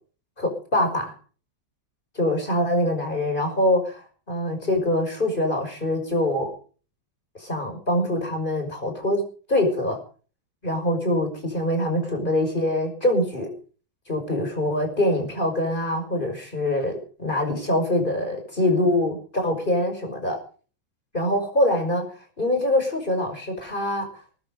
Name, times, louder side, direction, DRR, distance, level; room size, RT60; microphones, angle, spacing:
voice 1, 0.4-1.1 2.2-4.0 4.3-6.5 7.4-10.0 10.6-13.5 14.1-20.4 21.1-22.0 22.4-24.1, left 1 dB, 25° left, 4 dB, 5.8 m, -24 dB
21.5 x 11.0 x 5.1 m, 0.40 s
omnidirectional pair, 2.1 m